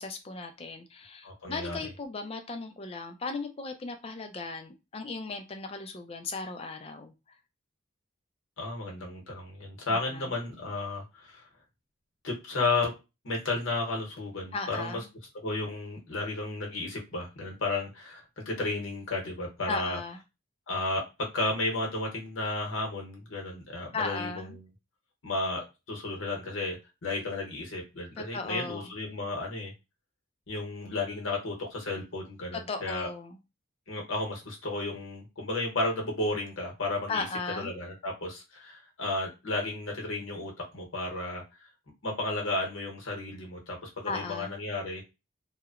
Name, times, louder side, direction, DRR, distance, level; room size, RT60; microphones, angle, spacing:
voice 1, 0.0-7.4 9.9-10.3 14.5-15.1 19.7-20.2 23.9-24.6 28.2-28.9 32.5-33.4 37.1-37.7 44.1-44.6, left 3 dB, 30° left, 7 dB, 0.3 m, -37 dB
voice 2, 1.2-1.8 8.6-11.4 12.2-12.9 13.2-14.9 15.4-20.0 20.7-24.6 25.2-29.7 30.5-33.1 33.9-37.3 37.6-41.6 42.0-45.0, left 2 dB, 75° left, -1 dB, 0.8 m, -33 dB
2.8 x 2.0 x 2.3 m, 0.26 s
head